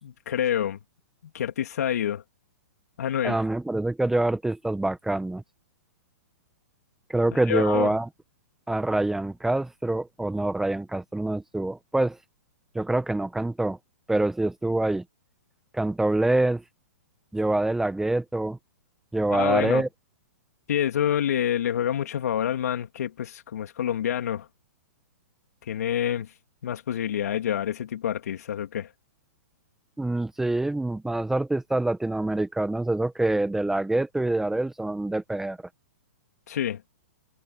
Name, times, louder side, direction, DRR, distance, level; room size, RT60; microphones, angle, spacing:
voice 1, 0.0-0.8 1.3-2.2 3.0-3.4 7.3-7.9 19.3-19.8 20.7-24.5 25.7-26.3 26.6-28.9 36.5-36.8, left 10 dB, 70° left, 3.3 m, -27 dB
voice 2, 3.2-5.4 7.1-8.1 8.7-12.2 12.7-13.8 14.1-15.0 15.7-16.6 17.3-18.6 19.1-19.9 30.0-35.6, right 2 dB, 5° right, 1.4 m, -25 dB
hypercardioid pair, 130°, 9 cm